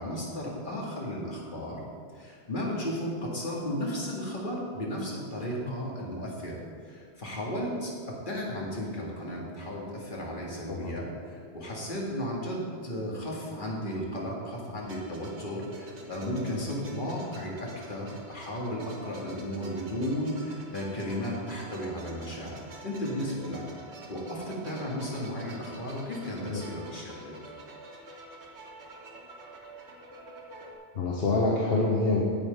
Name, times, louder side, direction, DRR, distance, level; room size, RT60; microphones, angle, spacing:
voice 1, 0.0-1.8 2.1-23.6 24.1-27.4, equal, 50° left, -3 dB, 2.2 m, -34 dB
sound 1, 14.8-30.8, right 2 dB, 85° right, 1.5 m, -48 dB
voice 2, 30.9-32.2, left 3 dB, 65° left, -2 dB, 1.3 m, -26 dB
8.9 x 8.0 x 5.3 m, 2.1 s
omnidirectional pair, 1.1 m